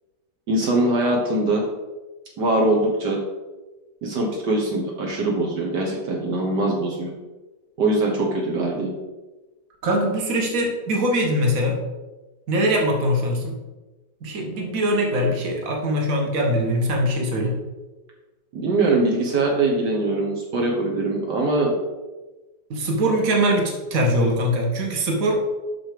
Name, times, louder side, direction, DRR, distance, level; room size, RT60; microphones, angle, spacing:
voice 1, 0.5-1.6 2.4-3.2 4.0-7.1 7.8-8.9 18.5-21.8, right 2 dB, 70° right, -1 dB, 1.7 m, -22 dB
voice 2, 9.8-11.8 12.5-13.5 14.2-17.6 22.7-25.4, equal, 50° right, 1 dB, 1.8 m, -22 dB
7.0 x 6.1 x 5.0 m, 1.2 s
omnidirectional pair, 1.9 m